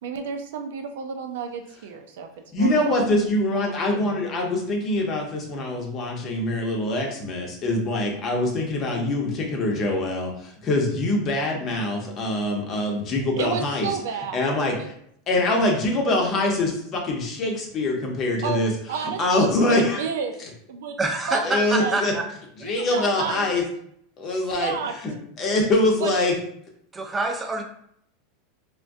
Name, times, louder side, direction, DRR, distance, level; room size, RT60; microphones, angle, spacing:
voice 1, 0.0-2.3 2.6-3.1 3.5-4.2 13.4-14.4 14.8-14.9 18.4-18.6 18.9-20.4 20.7-21.0 21.3-21.4 21.8-21.9 22.6-23.5 24.3-24.9 26.0-26.2, right 6 dB, 80° right, 5 dB, 0.4 m, -31 dB
voice 2, 2.5-13.9 14.3-14.9 15.3-18.7 19.0-20.0 21.4-22.1 22.6-23.6 24.2-24.7 25.4-26.3, left 2 dB, 30° left, 0 dB, 0.7 m, -24 dB
voice 3, 21.0-22.2 26.9-27.6, right 2 dB, 15° right, 3 dB, 0.4 m, -26 dB
3.4 x 2.2 x 2.6 m, 0.68 s
supercardioid pair, 140°, 0 cm